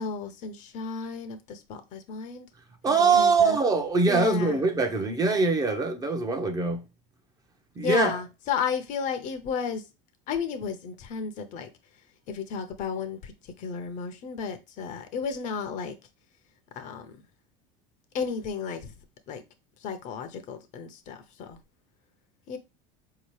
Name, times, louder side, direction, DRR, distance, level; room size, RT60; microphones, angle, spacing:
voice 1, 0.0-2.5 3.0-3.6 4.1-4.6 7.8-9.8 10.3-11.7 12.3-15.9 16.8-17.2 18.1-18.9 19.3-19.4 19.8-21.6 22.5-22.6, left 6 dB, 50° left, 0.7 m, -33 dB
voice 2, 2.8-6.8 7.8-8.1, right 4 dB, 20° right, 0.7 m, -23 dB
4.1 x 2.8 x 3.1 m
supercardioid pair, 115°, 16 cm